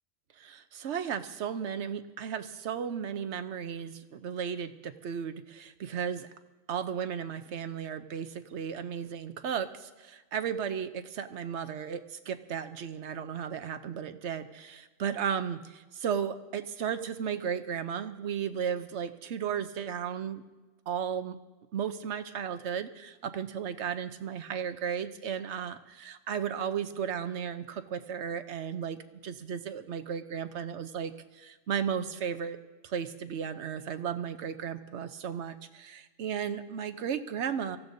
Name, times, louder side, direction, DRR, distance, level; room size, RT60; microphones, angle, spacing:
voice 1, 0.4-6.3 6.7-20.4 20.9-21.4 21.7-29.0 29.2-32.6 32.8-37.8, right 8 dB, 65° right, 10 dB, 1.0 m, -35 dB
24.5 x 15.5 x 2.7 m, 1.2 s
omnidirectional pair, 1.3 m